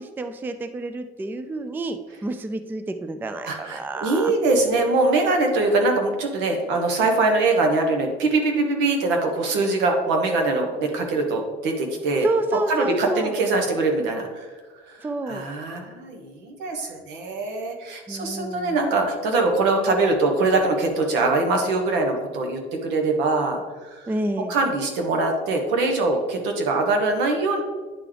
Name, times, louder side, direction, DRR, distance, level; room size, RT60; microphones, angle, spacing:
voice 1, 0.0-4.3 12.2-13.4 15.0-15.5 18.1-18.8 24.1-24.6, right 2 dB, 10° right, 9 dB, 0.4 m, -29 dB
voice 2, 3.4-12.3 12.7-14.5 14.9-24.1 24.5-27.6, right 3 dB, 75° right, 3 dB, 1.4 m, -23 dB
9.8 x 3.7 x 3.3 m, 1.4 s
supercardioid pair, 95°, 19 cm